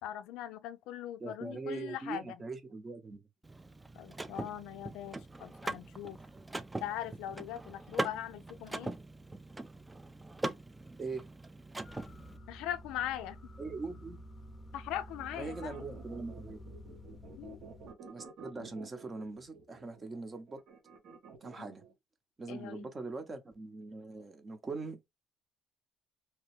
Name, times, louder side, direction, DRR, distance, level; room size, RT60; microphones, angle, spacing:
voice 1, 0.0-2.4 4.0-6.2 6.8-8.9 12.5-13.4 14.7-15.9 17.4-17.6 21.6-21.7 22.5-22.9, left 11 dB, 85° left, 0.3 m, -40 dB
voice 2, 1.2-3.2 11.0-11.2 13.6-14.2 15.3-16.6 18.1-20.6 21.4-21.8 22.4-25.0, right 3 dB, 30° right, 0.8 m, -41 dB
Car / Mechanisms, 3.4-12.4, right 2 dB, 15° right, 0.4 m, -41 dB
sound 1, 11.8-17.9, equal, 30° left, 0.6 m, -50 dB
sound 2, 15.2-21.9, right 5 dB, 65° right, 0.9 m, -52 dB
2.9 x 2.2 x 3.1 m
cardioid pair, 100°, 0 cm